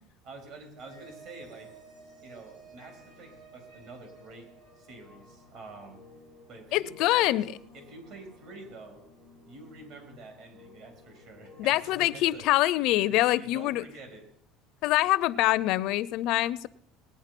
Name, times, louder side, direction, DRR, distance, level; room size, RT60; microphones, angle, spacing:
voice 1, 0.2-1.7 2.2-6.0 6.5-7.5 7.7-9.0 9.5-12.6 13.3-14.3, right 2 dB, 55° right, 4 dB, 4.3 m, -47 dB
sound 1, 0.8-12.5, right 1 dB, 80° right, 5.2 m, -54 dB
voice 2, 6.7-7.4 11.6-13.8 14.8-16.7, left 16 dB, 60° left, 17 dB, 0.5 m, -25 dB
19.5 x 9.3 x 6.0 m, 0.70 s
cardioid pair, 160°, 0 cm